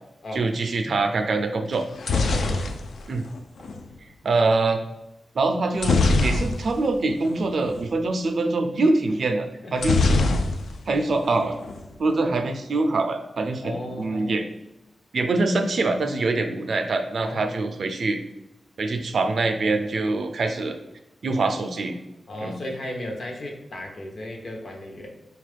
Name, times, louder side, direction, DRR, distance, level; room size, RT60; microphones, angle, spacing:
voice 1, 0.3-1.8 3.1-3.2 4.2-4.8 5.4-9.5 9.7-10.0 10.9-11.6 12.0-14.5 15.1-18.2 18.8-20.7 21.2-22.0 22.4-22.6, right 3 dB, 55° right, 6 dB, 0.3 m, -24 dB
sound 1, 1.7-3.8 5.8-6.9 7.2-7.4 7.6-7.9 9.8-10.9 11.2-11.9, left 3 dB, 85° left, 0.3 m, -23 dB
voice 2, 2.1-2.6 9.6-9.7 13.6-14.4 17.2-17.6 22.3-25.1, left 1 dB, 55° left, 1 dB, 0.6 m, -35 dB
4.0 x 2.4 x 3.2 m, 0.92 s
wide cardioid pair, 170°, 0 cm